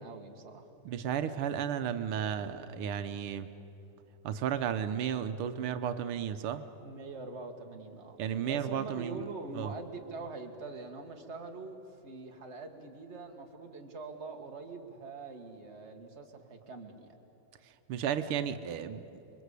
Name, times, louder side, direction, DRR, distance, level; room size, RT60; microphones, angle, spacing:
voice 1, 0.0-0.7 6.8-8.2 8.5-17.2, right 3 dB, 35° right, 3 dB, 2.0 m, -44 dB
voice 2, 0.9-3.5 4.2-6.7 8.2-9.2 9.5-9.7 17.9-19.0, right 8 dB, 85° right, 10 dB, 1.8 m, -33 dB
28.5 x 22.5 x 8.3 m, 3.0 s
omnidirectional pair, 2.3 m